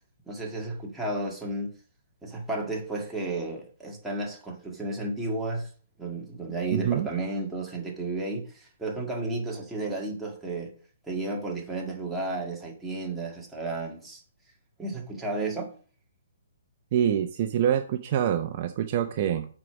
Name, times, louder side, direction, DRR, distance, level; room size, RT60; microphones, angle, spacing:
voice 1, 0.3-1.7 2.2-5.7 6.0-10.7 11.1-14.2 14.8-15.7, right 2 dB, 5° right, 1.8 m, -32 dB
voice 2, 6.7-7.1 16.9-19.5, right 9 dB, 40° right, 0.7 m, -25 dB
7.5 x 4.8 x 6.1 m
hypercardioid pair, 145°, 0 cm